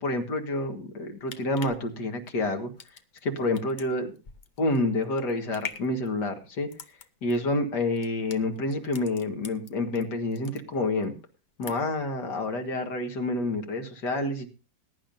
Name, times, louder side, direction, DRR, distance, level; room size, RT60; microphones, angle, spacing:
voice 1, 0.0-2.7 3.2-4.1 4.6-6.7 7.2-11.1 11.6-14.5, left 2 dB, 65° left, 4 dB, 2.2 m, -28 dB
sound 1, 1.0-10.0 10.3-11.1 11.4-12.1 12.4-12.5, left 5 dB, 50° left, 0.5 m, -44 dB
21.0 x 10.5 x 2.6 m, 0.33 s
omnidirectional pair, 2.0 m